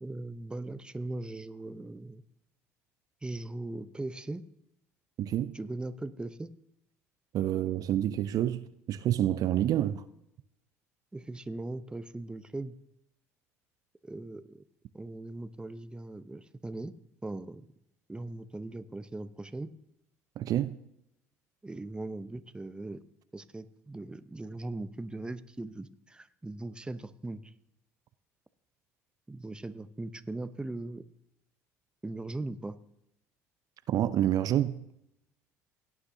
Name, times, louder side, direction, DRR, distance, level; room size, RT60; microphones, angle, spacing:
voice 1, 0.0-2.2 3.2-4.4 5.5-6.5 11.1-12.8 14.0-14.6 14.9-16.9 17.2-17.6 18.1-19.7 21.6-23.0 23.3-27.5 29.3-31.0 32.0-32.8, right 2 dB, 10° right, 0.7 m, -39 dB
voice 2, 5.2-5.6 7.3-10.0 20.4-20.8 33.9-34.8, right 12 dB, 50° right, 0.5 m, -28 dB
17.5 x 9.6 x 2.7 m
hypercardioid pair, 60°, 8 cm